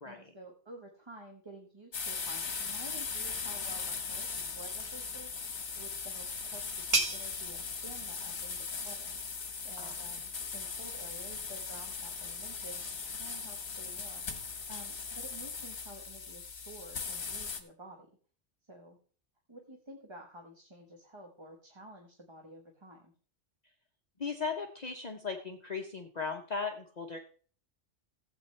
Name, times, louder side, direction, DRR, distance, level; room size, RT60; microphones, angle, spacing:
voice 1, 0.0-5.3 5.7-9.2 9.6-14.2 14.7-18.1 18.7-19.0 19.5-23.1, right 1 dB, 25° right, 2 dB, 1.2 m, -51 dB
sound 1, 1.9-17.6, left 5 dB, 65° left, 1.5 m, -39 dB
sound 2, 5.6-11.0, right 3 dB, 40° right, 1.3 m, -39 dB
voice 2, 24.2-27.2, left 5 dB, 40° left, 3 dB, 0.9 m, -37 dB
15.5 x 8.2 x 3.2 m, 0.43 s
omnidirectional pair, 1.2 m